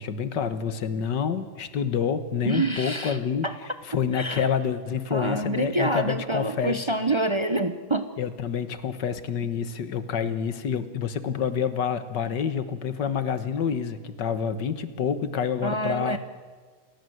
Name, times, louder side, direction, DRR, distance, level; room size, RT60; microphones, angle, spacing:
voice 1, 0.0-3.5 3.8-6.8 8.2-16.2, left 7 dB, 65° left, 12 dB, 1.9 m, -28 dB
voice 2, 2.4-3.2 3.4-3.5 4.1-4.5 5.1-8.1 15.6-16.2, right 2 dB, 45° right, 9 dB, 0.3 m, -26 dB
28.5 x 17.5 x 8.0 m, 1.5 s
omnidirectional pair, 2.1 m